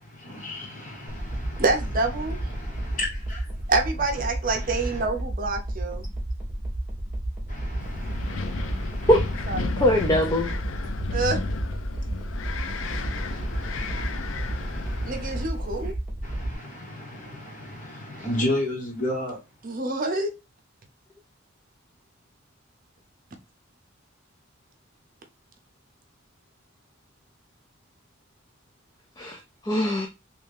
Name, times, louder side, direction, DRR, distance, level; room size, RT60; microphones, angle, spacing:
voice 1, 0.0-1.6 2.1-3.7 4.1-5.0 7.5-9.6 12.8-15.5 16.2-19.4, left 1 dB, 40° left, 1.6 m, -35 dB
sound 1, 1.1-16.5, right 1 dB, 5° right, 1.1 m, -32 dB
voice 2, 1.6-2.4 3.7-6.0 9.5-9.9 11.1-11.4 15.1-15.9 19.6-20.3, right 3 dB, 45° right, 0.7 m, -27 dB
Wind, 7.8-15.9, left 3 dB, 70° left, 0.5 m, -33 dB
voice 3, 9.8-10.5 29.2-30.1, left 1 dB, 20° left, 0.4 m, -22 dB
3.2 x 2.7 x 3.4 m
head